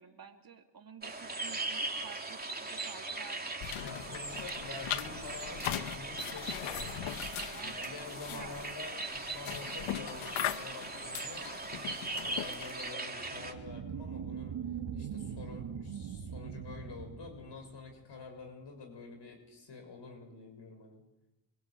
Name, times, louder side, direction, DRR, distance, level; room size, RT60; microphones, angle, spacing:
voice 1, 0.0-3.7 4.1-4.2 7.5-7.9 8.3-8.7, right 7 dB, 45° right, 4 dB, 3.1 m, -52 dB
sound 1, 1.0-13.5, right 2 dB, 20° right, 3.5 m, -40 dB
sound 2, 3.6-12.9, left 11 dB, 85° left, 1.4 m, -40 dB
voice 2, 3.8-7.2 7.6-11.5 12.1-14.6 14.9-21.0, left 4 dB, 60° left, 4 dB, 6.9 m, -48 dB
sound 3, 13.1-18.1, right 7 dB, 65° right, 2.6 m, -41 dB
28.5 x 22.5 x 8.6 m, 1.0 s
supercardioid pair, 60°, 47 cm